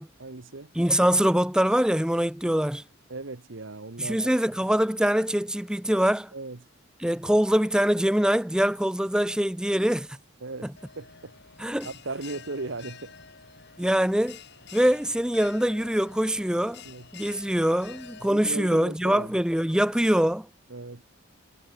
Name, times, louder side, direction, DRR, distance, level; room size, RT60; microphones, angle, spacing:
voice 1, 0.0-0.7 3.1-4.3 6.3-6.6 10.4-11.4 11.8-13.1 16.8-17.1 18.2-19.4 20.7-21.0, right 3 dB, 60° right, 1.1 m, -37 dB
voice 2, 0.8-2.8 4.0-6.3 7.0-10.1 11.6-11.9 13.8-14.4 14.7-16.8 17.1-20.5, equal, 5° right, 0.5 m, -23 dB
Bell, 10.8-18.3, left 6 dB, 50° left, 3.4 m, -48 dB
head